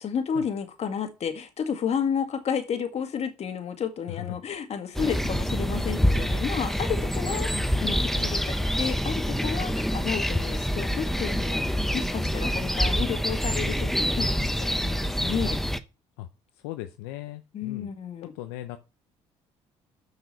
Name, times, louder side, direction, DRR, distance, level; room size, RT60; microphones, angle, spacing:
voice 1, 0.0-15.6 17.5-18.3, left 7 dB, 50° left, 1.9 m, -31 dB
voice 2, 4.1-4.4 7.5-8.3 16.2-16.3 16.5-17.9 18.3-18.8, left 14 dB, 90° left, 0.7 m, -39 dB
sound 1, 4.9-15.8, equal, ahead, 0.9 m, -26 dB
7.0 x 6.3 x 5.5 m
supercardioid pair, 65°, 14 cm